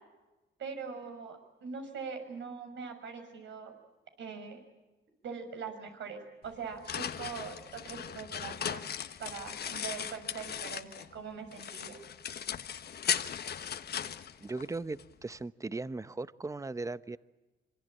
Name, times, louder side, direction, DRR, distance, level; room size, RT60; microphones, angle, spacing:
voice 1, 0.6-3.7 4.2-4.6 5.2-8.8 9.2-12.0, right 5 dB, 70° right, 6 dB, 6.2 m, -42 dB
sound 1, 6.4-11.2 11.5-15.1, left 8 dB, 55° left, 1.3 m, -37 dB
voice 2, 14.4-17.2, right 3 dB, 15° right, 15 dB, 0.9 m, -38 dB
26.5 x 24.5 x 8.8 m, 1.1 s
cardioid pair, 90°, 20 cm